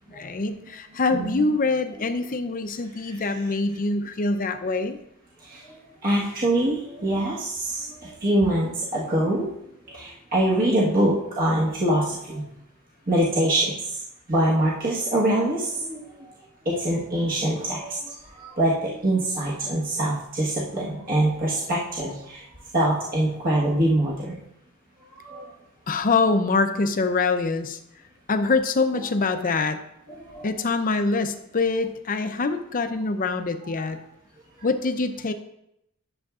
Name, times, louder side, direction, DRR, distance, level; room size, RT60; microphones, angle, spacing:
voice 1, 0.1-5.0 25.9-27.8 28.3-29.8 30.4-34.0 34.6-35.3, left 3 dB, 40° left, 8 dB, 0.6 m, -24 dB
voice 2, 1.1-1.5 5.5-5.6 6.0-9.5 9.9-12.4 13.1-13.7 14.3-16.0 16.6-18.0 18.5-22.4 22.7-24.4 25.2-25.5 30.2-30.5, right 1 dB, 40° right, -6 dB, 1.4 m, -24 dB
11.0 x 7.1 x 2.4 m, 0.80 s
head